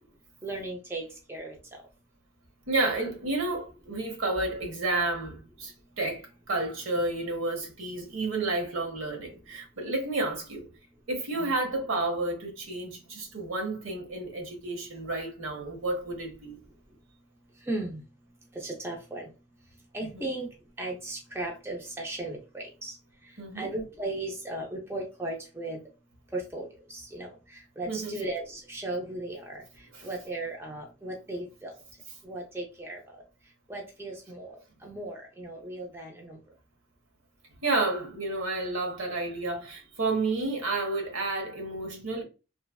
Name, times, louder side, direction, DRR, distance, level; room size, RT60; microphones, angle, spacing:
voice 1, 0.4-1.6 11.3-11.5 17.7-18.0 18.5-19.3 19.9-23.0 23.6-25.8 26.3-29.6 30.0-31.7 32.2-33.0 33.7-34.6 34.8-36.4, right 2 dB, 10° right, 0.5 m, -36 dB
voice 2, 2.7-10.7 11.1-16.6 20.1-20.3 23.4-23.7 27.9-28.2 29.9-30.1 37.6-42.2, right 2 dB, 85° right, 1.0 m, -31 dB
3.1 x 2.4 x 2.2 m
head